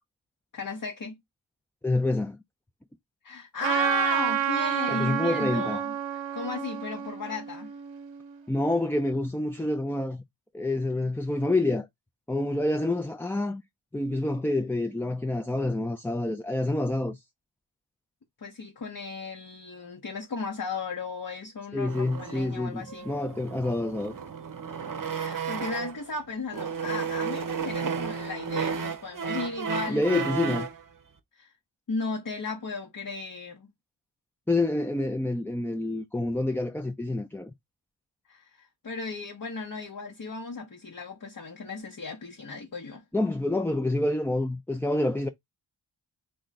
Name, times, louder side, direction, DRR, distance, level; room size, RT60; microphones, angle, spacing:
voice 1, 0.5-1.2 3.2-7.7 18.4-23.1 25.1-30.0 30.4-30.6 31.4-31.5 31.9-33.7 38.3-43.0, left 4 dB, 45° left, 0.9 m, -35 dB
voice 2, 1.8-2.4 4.9-5.8 8.5-10.2 10.5-11.9 12.3-13.6 13.9-17.2 21.7-24.2 29.9-30.7 34.5-37.5 43.1-45.3, left 2 dB, 5° left, 0.4 m, -27 dB
Trumpet, 3.6-8.3, right 10 dB, 90° right, 0.7 m, -29 dB
sound 1, 21.9-26.1 26.5-30.8, right 6 dB, 45° right, 0.7 m, -33 dB
3.8 x 2.1 x 3.9 m
cardioid pair, 40°, 45 cm